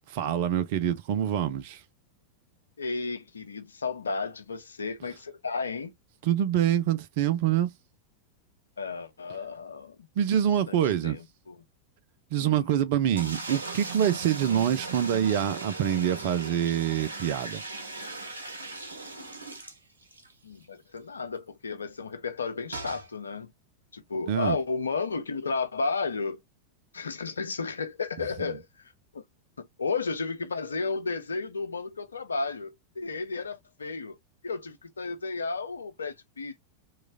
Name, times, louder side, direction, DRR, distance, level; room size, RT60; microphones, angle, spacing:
voice 1, 0.1-1.8 6.2-7.7 10.2-11.2 12.3-17.6 24.3-24.6, right 10 dB, 50° right, 0.5 m, -26 dB
voice 2, 2.8-5.9 8.8-10.1 10.7-10.8 11.0-11.6 12.4-12.7 20.4-23.5 23.9-26.4 26.9-29.2 29.6-34.2 34.4-36.6, left 4 dB, 75° left, 0.5 m, -33 dB
sound 1, 13.1-20.3 20.6-20.7 21.0-21.1 22.7-23.1, right 3 dB, 75° right, 0.8 m, -38 dB
3.1 x 2.4 x 3.4 m
figure-of-eight pair, 90°, 0 cm